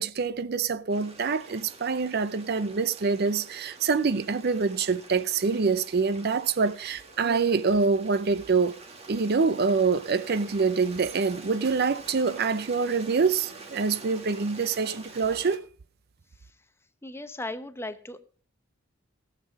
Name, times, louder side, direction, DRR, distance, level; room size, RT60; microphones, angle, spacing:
voice 1, 0.0-8.7 9.1-15.6, right 4 dB, 50° right, 0.5 m, -25 dB
Stream, 0.9-15.6, right 3 dB, 30° right, 1.8 m, -47 dB
voice 2, 17.0-18.2, left 2 dB, 10° left, 0.8 m, -36 dB
18.0 x 7.5 x 5.2 m
head